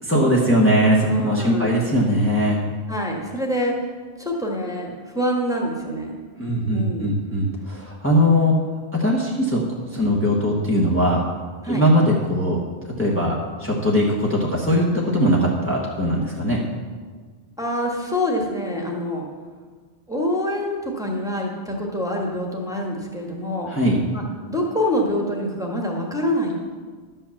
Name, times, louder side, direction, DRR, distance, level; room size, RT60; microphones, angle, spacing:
voice 1, 0.0-2.6 6.4-8.6 8.9-9.6 9.9-11.2 11.7-12.6 13.0-16.6 23.7-24.0, equal, 10° left, -4 dB, 1.2 m, -20 dB
voice 2, 1.0-1.8 2.9-3.8 4.2-6.1 6.7-7.2 11.6-11.8 17.6-19.2 20.1-23.7 24.1-26.5, left 1 dB, 5° right, -2 dB, 1.5 m, -26 dB
11.0 x 5.6 x 7.0 m, 1.5 s
omnidirectional pair, 1.1 m